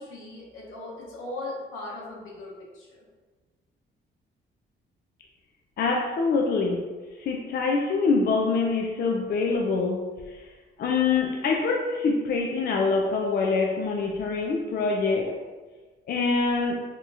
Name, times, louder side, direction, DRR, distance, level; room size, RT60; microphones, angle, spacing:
voice 1, 0.0-3.1, left 2 dB, 80° left, -4 dB, 1.0 m, -38 dB
voice 2, 5.8-6.9 7.2-10.5 10.8-15.3 16.1-16.8, left 4 dB, 50° left, 0 dB, 0.4 m, -25 dB
2.9 x 2.3 x 3.9 m, 1.3 s
cardioid pair, 90°, 20 cm